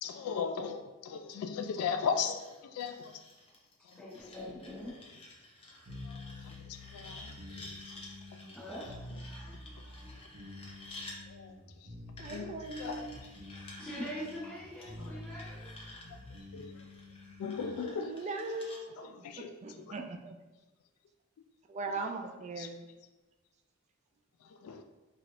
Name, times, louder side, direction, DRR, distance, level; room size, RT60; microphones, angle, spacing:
voice 1, 0.0-3.2 6.0-7.8 11.3-11.6 11.8-11.9 12.3-12.5 12.8-13.1 15.0-15.2 16.5-16.8 17.4-18.1 19.0-19.5 22.6-22.7 24.4-24.8, left 6 dB, 80° left, 11 dB, 0.3 m, -37 dB
sound 1, 2.2-11.2 12.2-18.8, left 2 dB, 25° left, 0.6 m, -52 dB
voice 2, 3.9-5.0 8.5-10.1 13.5-15.7, equal, 5° left, -9 dB, 0.9 m, -44 dB
sound 2, 5.9-17.7, left 2 dB, 65° right, 1.0 m, -48 dB
voice 3, 12.2-13.2 17.8-20.3 21.7-22.9, right 3 dB, 35° right, 5 dB, 0.3 m, -40 dB
4.6 x 2.8 x 2.5 m, 1.2 s
head